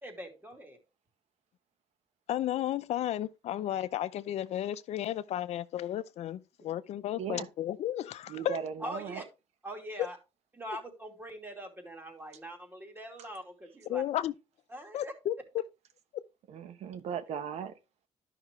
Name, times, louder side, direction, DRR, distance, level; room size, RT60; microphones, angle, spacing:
voice 1, 0.0-0.8 8.8-9.2 9.6-10.2 10.5-14.0 14.7-15.1, right 1 dB, 20° right, 2.6 m, -42 dB
voice 2, 2.3-8.6 13.9-14.3 14.9-15.3 16.1-16.2, left 12 dB, 75° left, 0.5 m, -33 dB
voice 3, 7.2-7.5 8.3-9.2 16.5-17.7, right 7 dB, 75° right, 0.9 m, -37 dB
12.0 x 5.8 x 3.1 m
cardioid pair, 105°, 11 cm